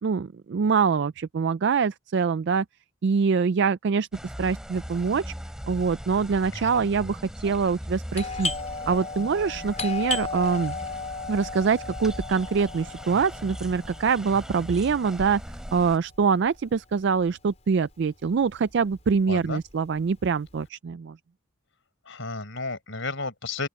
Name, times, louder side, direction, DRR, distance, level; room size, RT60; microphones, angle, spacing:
voice 1, 0.0-2.6 3.0-4.1 4.4-5.3 5.7-8.5 8.9-10.7 11.3-15.4 15.7-21.2, right 5 dB, 55° right, 0.4 m, -24 dB
sound 1, 4.1-16.0, equal, 5° right, 2.9 m, -39 dB
Doorbell, 8.1-17.5 17.8-17.9 18.5-18.8 19.2-20.5, left 4 dB, 30° left, 4.8 m, -35 dB
voice 2, 19.3-19.6 22.1-23.7, left 3 dB, 65° left, 4.6 m, -33 dB
open air
head